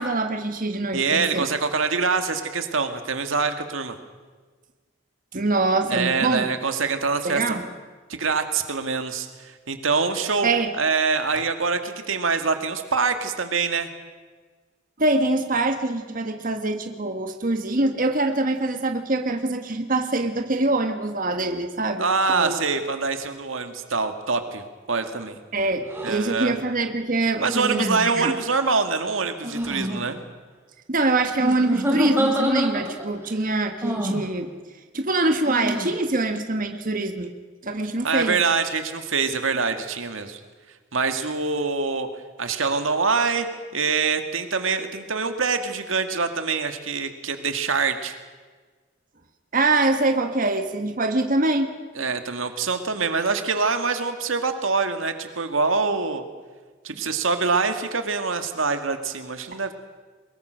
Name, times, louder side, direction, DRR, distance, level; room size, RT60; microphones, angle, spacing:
voice 1, 0.0-1.5 5.3-6.5 7.2-7.6 10.4-10.7 15.0-22.6 25.5-28.3 30.9-34.5 34.9-37.3 37.6-38.4 49.5-51.7 56.9-57.0, right 2 dB, 45° right, 6 dB, 1.5 m, -24 dB
voice 2, 0.9-4.0 5.9-7.6 8.2-10.5 10.7-13.9 22.0-25.4 26.0-26.6 27.4-30.2 38.0-40.4 40.9-42.1 42.4-43.5 43.7-48.1 52.0-56.2 56.8-59.7, right 4 dB, 90° right, 7 dB, 1.9 m, -25 dB
sound 1, 25.9-26.1 27.4-28.3 29.4-30.0 31.4-33.1 33.8-34.3 35.4-35.9, equal, 15° right, 3.9 m, -26 dB
23.0 x 21.5 x 6.4 m, 1.4 s
head